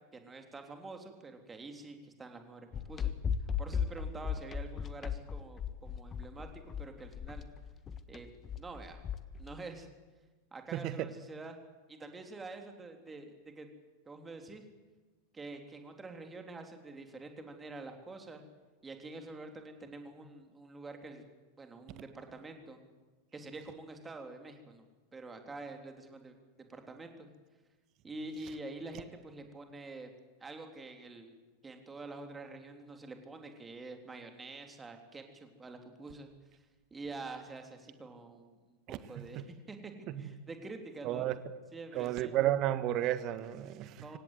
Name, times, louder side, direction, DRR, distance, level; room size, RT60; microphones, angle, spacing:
voice 1, 0.1-3.1 3.6-6.5 6.8-7.5 8.1-8.3 8.6-9.0 9.4-9.9 10.5-11.6 11.9-13.7 14.1-14.6 15.3-18.4 18.8-21.2 21.6-22.8 23.3-24.9 25.1-26.4 26.7-27.3 28.0-30.1 30.4-31.3 31.6-36.3 36.9-38.8 39.1-39.9 40.2-41.3 41.7-42.3 44.0-44.2, right 3 dB, 15° right, 3.4 m, -47 dB
sound 1, 2.7-9.5, left 7 dB, 25° left, 1.4 m, -36 dB
voice 2, 10.7-11.1 38.9-39.4 40.1-40.3 41.0-41.4 41.9-44.2, right 13 dB, 35° right, 1.5 m, -33 dB
26.0 x 17.0 x 8.2 m
figure-of-eight pair, 90°, 0 cm